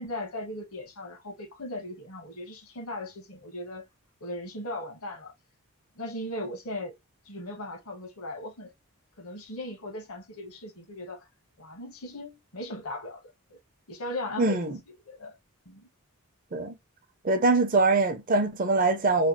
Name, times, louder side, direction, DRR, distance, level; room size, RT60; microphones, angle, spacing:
voice 1, 0.0-3.8 4.2-5.3 6.0-7.0 7.2-8.7 9.2-11.3 11.6-13.2 13.5-13.6 13.9-14.6 14.9-15.4 15.6-15.9, left 1 dB, 75° left, 1.3 m, -38 dB
voice 2, 14.4-14.7 16.5-16.7 17.2-19.3, right 3 dB, 40° right, 0.6 m, -23 dB
3.2 x 2.3 x 2.7 m
head